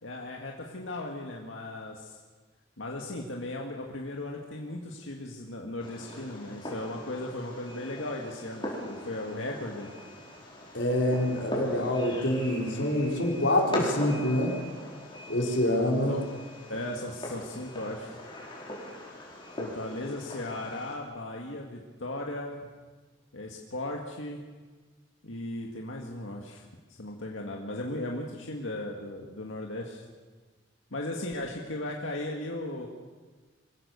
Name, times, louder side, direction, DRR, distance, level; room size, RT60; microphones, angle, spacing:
voice 1, 0.0-2.2 2.8-10.0 16.1-16.3 16.7-18.2 19.6-22.6 23.3-24.4 25.2-26.6 27.0-30.0 30.9-32.9, left 1 dB, 90° left, 0 dB, 2.0 m, -36 dB
Fireworks, 5.8-21.0, left 1 dB, 25° left, 4.8 m, -40 dB
voice 2, 10.7-14.6 15.3-16.2, left 1 dB, 75° left, 0 dB, 4.0 m, -26 dB
25.5 x 16.0 x 7.0 m, 1.4 s
head